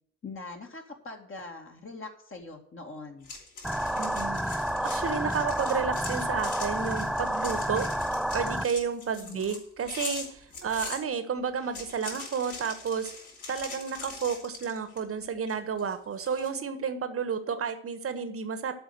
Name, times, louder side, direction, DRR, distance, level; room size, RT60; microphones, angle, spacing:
voice 1, 0.2-3.3 9.2-9.6, left 3 dB, 35° left, 2 dB, 2.2 m, -42 dB
sound 1, 3.2-11.0 11.6-15.1 15.5-16.5, left 3 dB, 50° left, 4.7 m, -42 dB
sound 2, 3.6-8.6, equal, ahead, 0.3 m, -30 dB
voice 2, 4.0-4.4 4.8-7.9 8.3-13.1 13.5-18.7, right 6 dB, 35° right, 10 dB, 1.5 m, -31 dB
12.5 x 5.4 x 7.8 m, 0.62 s
figure-of-eight pair, 45°, 37 cm